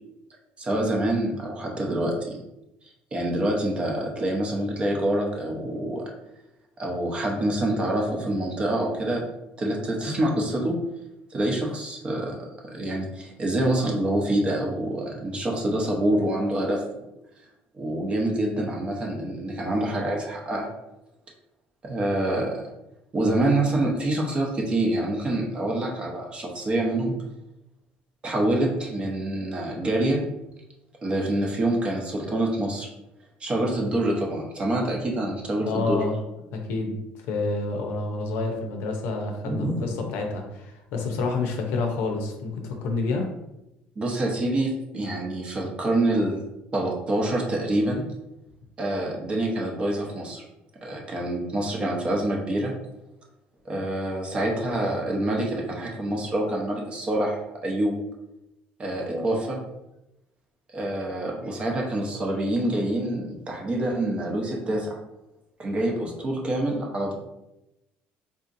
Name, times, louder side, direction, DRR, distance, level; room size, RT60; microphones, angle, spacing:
voice 1, 0.6-2.4 3.1-6.0 6.8-9.2 9.6-10.7 11.3-12.4 12.7-17.1 17.8-20.7 21.8-22.6 23.1-27.1 28.2-30.2 31.0-32.9 33.4-36.0 39.5-39.9 44.0-46.4 46.7-48.0 48.8-50.4 50.8-52.7 53.6-57.9 58.8-59.6 60.7-65.0 65.6-67.1, right 1 dB, 30° right, 0 dB, 0.7 m, -26 dB
voice 2, 35.6-36.1 36.5-43.3, left 3 dB, 75° left, 3 dB, 0.7 m, -28 dB
3.7 x 2.8 x 2.6 m, 0.91 s
cardioid pair, 125°, 4 cm